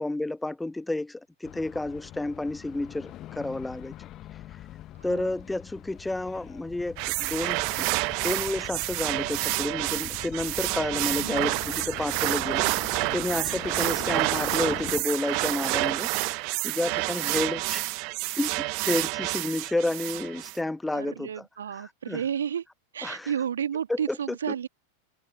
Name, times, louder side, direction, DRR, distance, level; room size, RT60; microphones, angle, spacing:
voice 1, 0.0-3.9 5.0-7.9 8.2-17.8 18.4-21.3 21.8-22.2 23.0-23.3 23.9-24.2, left 2 dB, 5° left, 0.5 m, -31 dB
sound 1, 1.4-15.0, left 13 dB, 35° left, 1.1 m, -43 dB
sound 2, 7.0-20.6, right 33 dB, 45° right, 1.0 m, -29 dB
voice 2, 11.2-11.5 13.7-14.1 16.9-17.1 20.9-22.6 22.9-24.7, right 8 dB, 65° right, 1.8 m, -32 dB
figure-of-eight pair, 90°, 0 cm